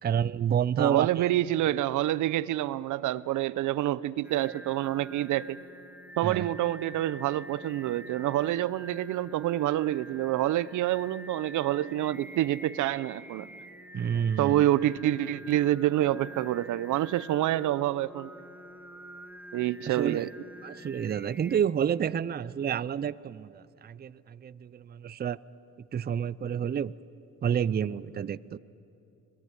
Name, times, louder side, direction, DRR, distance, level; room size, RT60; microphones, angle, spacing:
voice 1, 0.0-1.3 6.2-6.5 13.9-14.6 19.8-20.3 20.6-25.4 25.9-26.9 27.4-28.6, right 8 dB, 35° right, 18 dB, 0.5 m, -29 dB
voice 2, 0.8-5.6 6.2-13.5 14.4-18.3 19.5-20.3, right 14 dB, 80° right, 19 dB, 0.7 m, -27 dB
Singing, 4.2-21.6, equal, 5° right, 1.2 m, -47 dB
25.5 x 19.0 x 9.6 m, 2.8 s
cardioid pair, 90°, 30 cm